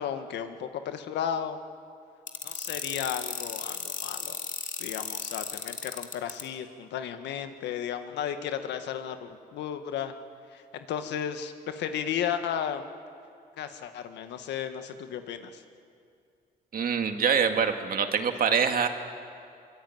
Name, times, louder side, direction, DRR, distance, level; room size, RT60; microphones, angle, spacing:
voice 1, 0.0-1.6 2.4-4.4 4.8-10.1 10.5-12.8 13.6-15.6, left 9 dB, 90° left, 8 dB, 1.6 m, -34 dB
sound 1, 2.3-6.4, left 6 dB, 50° left, 2.5 m, -35 dB
voice 2, 16.7-18.9, right 6 dB, 55° right, 6 dB, 2.2 m, -25 dB
24.0 x 22.5 x 9.3 m, 2.4 s
cardioid pair, 90°, 18 cm